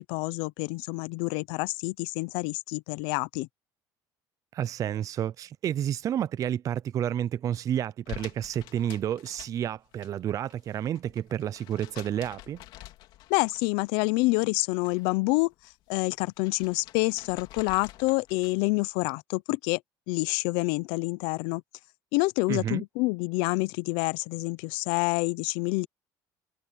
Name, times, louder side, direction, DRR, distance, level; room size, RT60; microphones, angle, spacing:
voice 1, 0.0-3.5 13.3-15.5 15.9-19.8 20.1-21.6 22.1-25.9, left 25 dB, 85° left, 0.6 m, -27 dB
voice 2, 4.5-12.6 22.5-22.8, right 10 dB, 45° right, 0.5 m, -30 dB
sound 1, 8.1-10.1 10.4-13.9 14.2-15.2 15.5-18.7, left 15 dB, 70° left, 3.0 m, -48 dB
cardioid pair, 115°, 8 cm